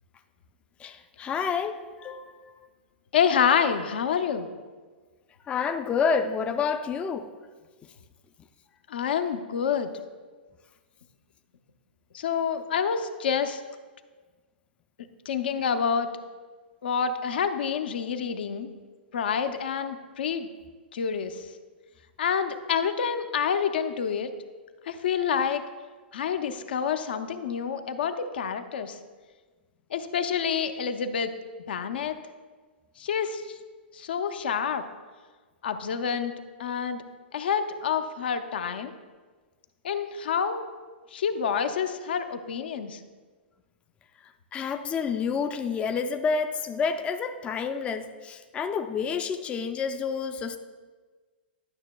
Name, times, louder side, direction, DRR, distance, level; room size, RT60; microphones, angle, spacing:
voice 1, 0.8-2.5 5.5-7.3 44.5-50.6, left 5 dB, 20° left, 7 dB, 0.4 m, -29 dB
voice 2, 3.1-4.5 8.9-9.9 12.1-13.6 15.3-16.1 16.8-18.7 19.1-20.5 20.9-21.5 22.2-24.3 24.9-25.6 26.1-29.0 29.9-31.3 31.7-32.2 33.0-33.6 33.9-34.8 35.6-36.3 36.6-37.0 37.3-38.9 39.8-40.7 41.1-43.0, left 7 dB, 65° left, 9 dB, 0.6 m, -27 dB
11.5 x 6.4 x 2.2 m, 1.4 s
hypercardioid pair, 110°, 6 cm